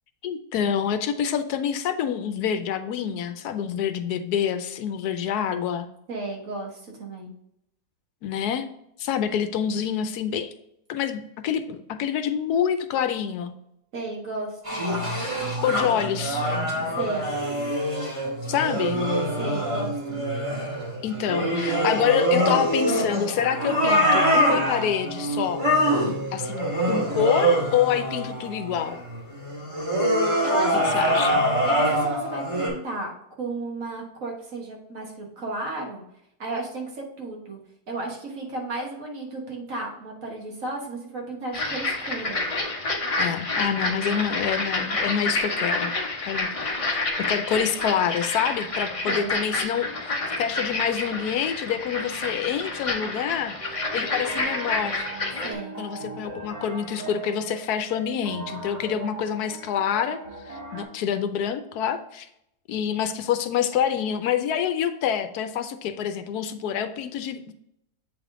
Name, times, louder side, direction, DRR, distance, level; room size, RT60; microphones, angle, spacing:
voice 1, 0.2-5.9 8.2-8.7 9.0-10.5 10.9-13.5 15.6-16.5 18.5-19.0 21.0-25.6 26.3-29.0 30.8-31.4 43.2-45.9 46.3-46.8 47.2-53.6 53.9-55.1 55.8-60.2 60.4-62.3 62.7-67.5, left 8 dB, 80° left, 9 dB, 1.1 m, -27 dB
voice 2, 6.1-7.3 13.9-14.8 17.0-17.3 19.4-20.2 30.4-31.2 31.6-33.1 33.4-36.0 36.4-37.6 37.9-42.4 49.1-49.4 55.4-55.7, right 2 dB, 60° right, 0 dB, 1.7 m, -33 dB
sound 1, 14.6-32.7, equal, 20° right, 1.9 m, -24 dB
sound 2, 41.5-55.5, left 2 dB, 30° left, 0.7 m, -29 dB
sound 3, 53.6-60.8, right 3 dB, 90° right, 2.8 m, -39 dB
8.0 x 3.5 x 3.7 m, 0.78 s
omnidirectional pair, 1.7 m